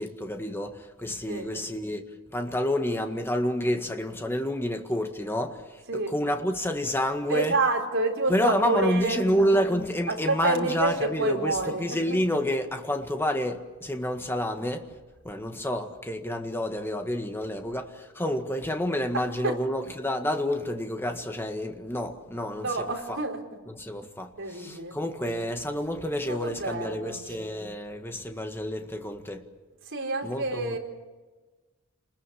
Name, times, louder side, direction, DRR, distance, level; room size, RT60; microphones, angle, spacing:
voice 1, 0.0-7.6 8.3-15.0 15.2-23.2 23.7-29.5 30.2-30.8, equal, 10° left, 1.8 m, -29 dB
voice 2, 7.3-9.5 10.1-11.8 12.1-12.2 19.1-19.5 22.6-23.4 24.4-24.9 26.3-27.2 29.9-30.8, right 3 dB, 60° right, 4.4 m, -28 dB
29.0 x 21.0 x 7.2 m
head